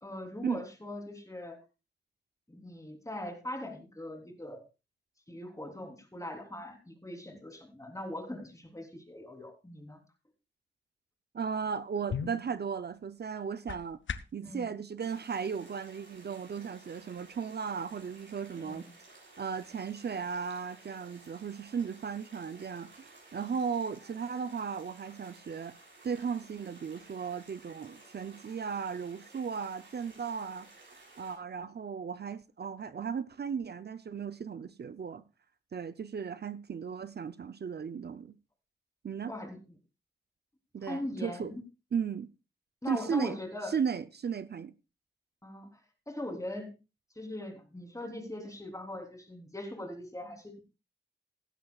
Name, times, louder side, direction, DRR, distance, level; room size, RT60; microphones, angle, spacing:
voice 1, 0.0-1.6 2.5-4.6 5.3-10.0 14.4-14.7 18.5-18.9 39.3-39.6 40.9-41.6 42.8-43.8 45.4-45.8 46.1-46.7 47.1-50.6, left 1 dB, 15° left, 3.4 m, -41 dB
voice 2, 11.3-14.0 14.3-18.9 19.4-25.7 26.0-35.2 35.7-38.4 39.0-39.3 40.7-41.5 41.9-42.3 42.9-43.4 43.7-44.7, right 6 dB, 60° right, 0.6 m, -36 dB
sound 1, 11.6-14.5, left 7 dB, 85° left, 0.7 m, -41 dB
sound 2, 15.0-31.3, right 2 dB, 85° right, 7.4 m, -56 dB
16.0 x 12.0 x 2.4 m
cardioid pair, 60°, 19 cm